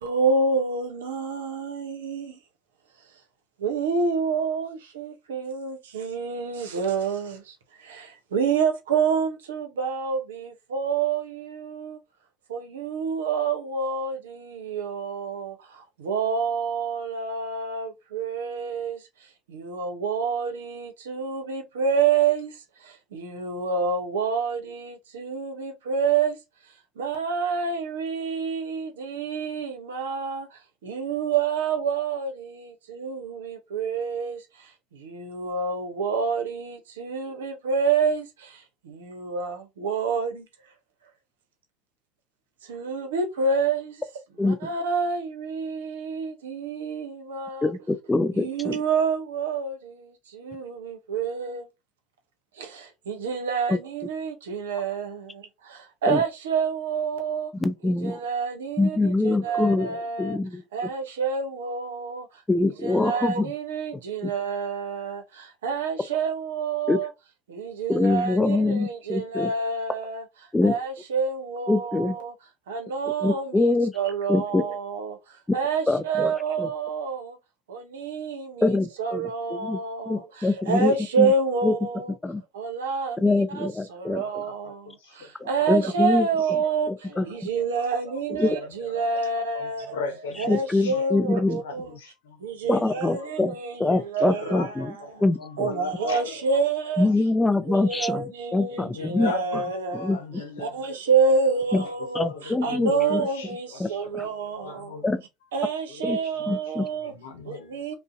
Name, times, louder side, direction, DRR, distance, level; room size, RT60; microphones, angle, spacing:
voice 1, 0.0-2.4 3.6-12.0 12.5-19.0 19.5-26.4 27.0-40.5 42.6-44.0 44.4-47.7 48.3-51.7 52.6-57.5 57.8-60.4 60.7-62.4 62.8-67.1 67.5-70.2 70.6-72.3 72.7-75.2 75.5-77.4 77.7-82.1 82.5-90.0 90.4-92.0 92.4-95.2 95.6-97.1 97.7-100.2 100.6-105.0 105.5-107.1 107.4-107.9, right 5 dB, 85° right, 0.6 m, -28 dB
voice 2, 47.6-48.8 53.7-53.8 56.1-56.2 57.6-58.2 58.8-60.6 62.5-63.5 64.2-64.3 66.9-67.0 67.9-69.5 70.5-70.8 71.7-72.2 73.2-73.9 74.3-74.6 75.9-76.3 76.6-76.7 78.6-79.8 80.1-81.3 81.6-81.7 82.2-82.4 83.2-84.4 85.4-86.3 86.9-87.3 88.4-88.5 90.5-91.6 92.7-93.5 93.8-94.9 95.2-95.7 97.0-99.6 99.9-100.4 101.7-101.8 102.1-103.3 103.8-104.3 105.0-105.2 106.0-106.2 106.5-106.9, left 2 dB, 15° left, 0.4 m, -24 dB
voice 3, 84.6-85.2 87.1-87.2 87.5-87.6 88.4-88.7 89.6-90.5 90.8-91.0 91.6-92.4 92.6-92.8 93.1-93.3 94.4-94.7 95.4-96.3 98.8-101.0 101.7-104.0 104.6-105.0 105.9-106.2 106.5-106.6 107.0-107.9, left 3 dB, 85° left, 0.8 m, -37 dB
2.6 x 2.0 x 2.4 m
hypercardioid pair, 75°, 0 cm